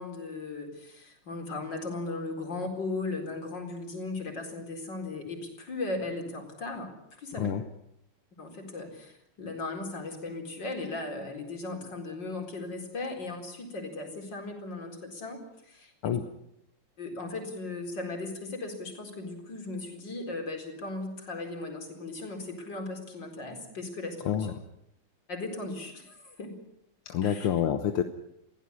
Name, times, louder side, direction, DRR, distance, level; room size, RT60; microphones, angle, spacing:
voice 1, 0.0-6.9 7.2-7.5 8.4-16.2 17.0-24.5 25.3-26.5 27.2-27.5, left 3 dB, 55° left, 3 dB, 5.0 m, -37 dB
voice 2, 27.1-28.0, left 9 dB, 85° left, 7 dB, 2.1 m, -27 dB
22.0 x 16.5 x 9.8 m, 0.80 s
omnidirectional pair, 2.4 m